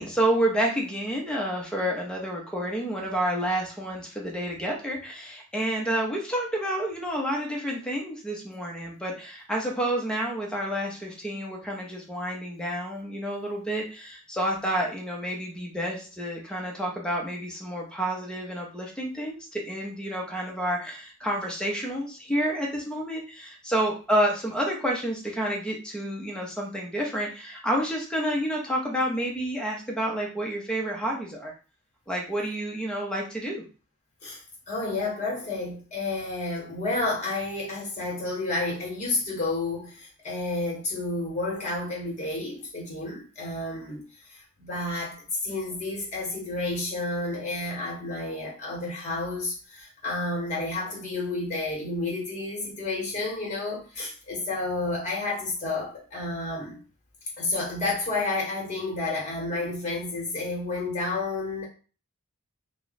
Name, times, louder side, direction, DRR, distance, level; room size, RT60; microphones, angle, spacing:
voice 1, 0.0-31.5 32.1-33.6, right 1 dB, 5° left, -1 dB, 0.8 m, -29 dB
voice 2, 34.7-44.0 44.3-56.8 57.4-61.6, left 2 dB, 35° left, -4 dB, 1.1 m, -30 dB
3.0 x 2.3 x 4.0 m, 0.36 s
head